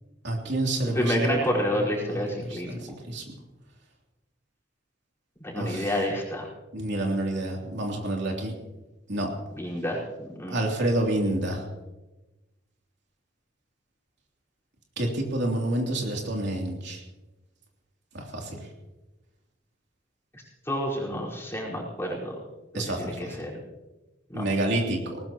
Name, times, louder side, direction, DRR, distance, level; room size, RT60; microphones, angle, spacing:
voice 1, 0.2-1.4 1.8-2.8 3.1-3.2 5.6-5.9 6.7-8.5 9.1-9.3 10.5-11.6 15.0-17.0 18.1-18.7 22.7-23.3 24.3-25.2, right 1 dB, 65° right, 0 dB, 3.1 m, -28 dB
voice 2, 0.9-2.9 5.4-6.5 9.6-10.6 20.6-22.4 22.7-23.5 24.3-24.4, equal, 15° left, -4 dB, 4.7 m, -29 dB
20.5 x 19.5 x 3.0 m, 1.1 s
head